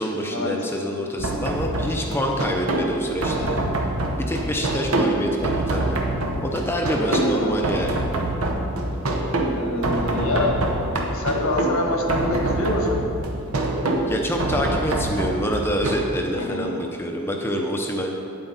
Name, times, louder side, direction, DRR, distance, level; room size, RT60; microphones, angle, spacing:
voice 1, 0.0-3.6 4.3-6.0 6.4-8.0 14.1-18.2, equal, 10° left, 1 dB, 0.6 m, -26 dB
sound 1, 1.2-16.0, right 2 dB, 85° right, 1.0 m, -25 dB
voice 2, 6.9-7.5 9.5-13.0 16.3-16.8, left 1 dB, 80° left, 1 dB, 1.4 m, -26 dB
9.3 x 7.9 x 4.1 m, 2.6 s
head